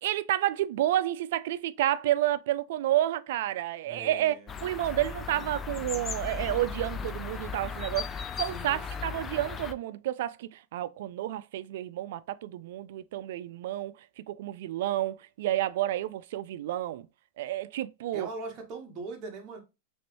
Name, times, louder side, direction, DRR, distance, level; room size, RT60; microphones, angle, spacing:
voice 1, 0.0-4.3 4.6-8.1 8.4-13.9 14.3-17.1 17.4-18.3, right 13 dB, 65° right, 0.3 m, -30 dB
voice 2, 3.8-4.5 8.5-9.2 18.1-19.6, right 3 dB, 35° right, 1.2 m, -41 dB
sound 1, 4.5-9.7, left 6 dB, 20° left, 0.3 m, -37 dB
3.1 x 3.0 x 3.0 m
supercardioid pair, 135°, 0 cm